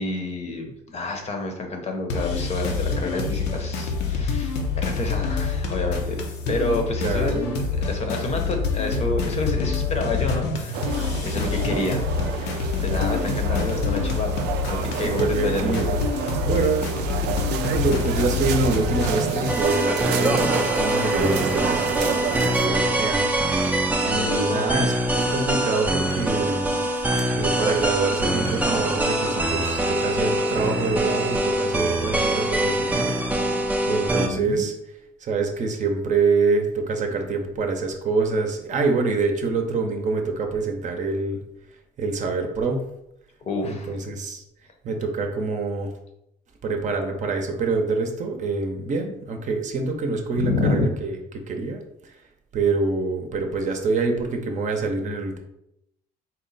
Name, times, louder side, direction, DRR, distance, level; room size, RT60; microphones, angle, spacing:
voice 1, 0.0-6.2 6.5-7.4 7.8-10.9 11.2-12.1 12.3-14.4 14.7-15.8 24.2-24.7 34.1-34.7 43.4-43.9 50.4-50.9, left 2 dB, 40° left, 4 dB, 0.8 m, -28 dB
sound 1, 2.1-19.6, left 4 dB, 80° left, 0.7 m, -26 dB
voice 2, 7.0-7.5 11.3-11.8 15.0-16.0 16.4-16.9 17.7-23.3 24.0-26.8 27.3-33.1 33.9-34.7 35.2-41.4 42.0-42.8 43.6-44.4 44.8-45.9 46.6-51.1 51.5-51.8 52.5-55.4, right 4 dB, 45° right, 4 dB, 0.7 m, -25 dB
sound 2, 10.7-22.7, right 8 dB, 85° right, 0.4 m, -30 dB
sound 3, 19.5-34.3, right 1 dB, 10° right, 0.5 m, -23 dB
4.1 x 2.1 x 3.9 m, 0.81 s
cardioid pair, 110°, 17 cm